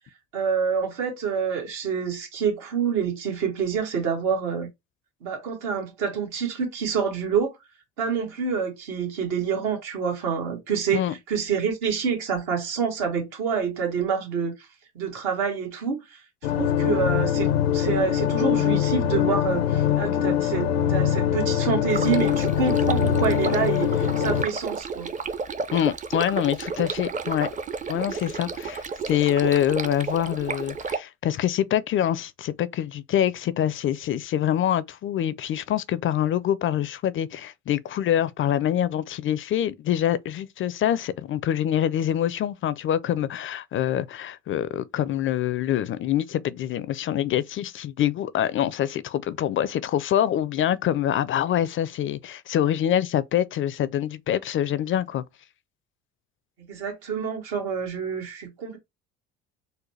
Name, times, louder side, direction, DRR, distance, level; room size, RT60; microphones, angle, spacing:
voice 1, 0.3-4.7 5.2-7.5 8.0-14.7 14.9-16.2 16.6-25.1 56.7-58.8, right 6 dB, 75° right, 1.6 m, -27 dB
sound 1, 16.4-24.4, left 10 dB, 90° left, 0.6 m, -23 dB
Stream, 21.9-31.0, right 4 dB, 25° right, 0.5 m, -32 dB
voice 2, 25.7-27.5 27.9-55.2, left 11 dB, 40° left, 0.4 m, -25 dB
4.0 x 2.1 x 3.1 m
hypercardioid pair, 65°, 31 cm